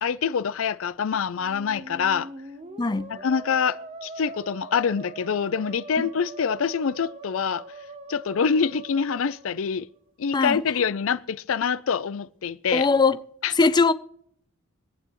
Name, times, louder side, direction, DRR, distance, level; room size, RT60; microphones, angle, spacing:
voice 1, 0.0-2.3 3.1-7.6 8.1-9.9 10.2-12.9 13.4-13.5, left 6 dB, 80° left, 0.5 m, -25 dB
Musical instrument, 1.3-10.1, right 3 dB, 35° right, 0.8 m, -42 dB
voice 2, 2.8-3.1 10.3-10.6 12.7-13.2 13.6-13.9, left 4 dB, 20° left, 0.5 m, -20 dB
24.0 x 9.0 x 3.0 m
head